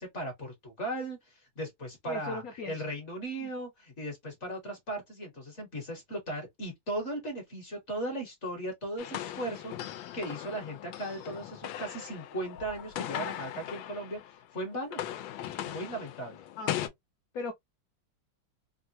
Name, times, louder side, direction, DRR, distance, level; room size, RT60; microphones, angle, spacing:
voice 1, 0.0-15.0 15.6-16.5, right 1 dB, 45° left, 1.1 m, -37 dB
voice 2, 2.0-2.8 3.4-3.5 16.6-16.7 17.3-17.5, left 3 dB, 65° left, 0.9 m, -37 dB
sound 1, 9.0-14.4 14.7-16.9, left 12 dB, 80° left, 1.3 m, -39 dB
3.6 x 2.1 x 2.6 m
omnidirectional pair, 2.1 m